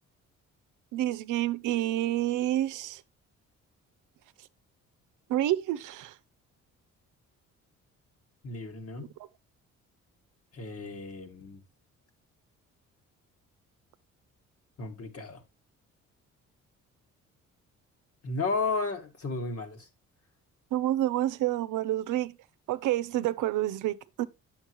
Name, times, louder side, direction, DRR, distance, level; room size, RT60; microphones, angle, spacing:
voice 1, 0.9-3.0 5.3-6.1 20.7-22.4 22.7-24.3, right 14 dB, 80° right, 0.7 m, -28 dB
voice 2, 8.4-9.1 10.5-11.6 14.8-15.4 18.2-19.9, left 3 dB, 50° left, 2.0 m, -33 dB
9.2 x 7.2 x 3.0 m
cardioid pair, 90°, 30 cm